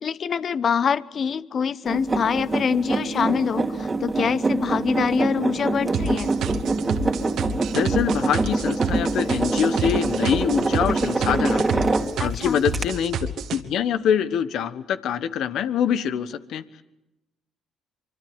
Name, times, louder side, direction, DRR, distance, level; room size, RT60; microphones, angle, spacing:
voice 1, 0.0-6.3 12.2-12.6, left 7 dB, 50° left, 18 dB, 1.0 m, -25 dB
sound 1, 1.8-12.3 12.7-12.8, right 3 dB, 25° right, 2.5 m, -25 dB
sound 2, 5.9-13.6, right 5 dB, 70° right, 2.0 m, -29 dB
voice 2, 7.7-11.8 12.2-16.6, left 8 dB, 70° left, 14 dB, 1.3 m, -25 dB
25.0 x 24.5 x 8.9 m, 0.94 s
hypercardioid pair, 55°, 0 cm